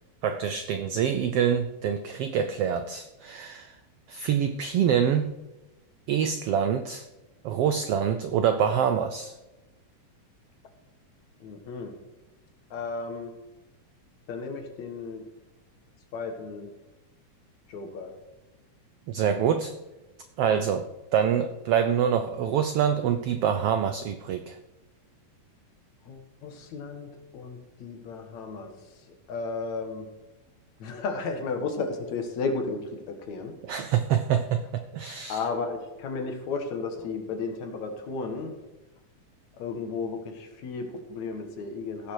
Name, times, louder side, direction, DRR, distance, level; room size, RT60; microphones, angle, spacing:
voice 1, 0.2-3.8 4.1-5.3 6.1-7.1 7.4-9.3 19.1-19.7 20.4-20.9 21.1-24.6 33.6-35.4, right 8 dB, 85° right, 9 dB, 1.3 m, -25 dB
voice 2, 11.4-11.9 12.7-13.3 14.3-15.2 16.1-16.7 17.7-18.1 26.1-28.7 29.3-30.1 30.8-32.8 33.1-33.5 35.3-38.6 39.6-42.1, left 4 dB, 70° left, 5 dB, 2.8 m, -33 dB
16.5 x 6.8 x 4.8 m, 1.0 s
omnidirectional pair, 3.5 m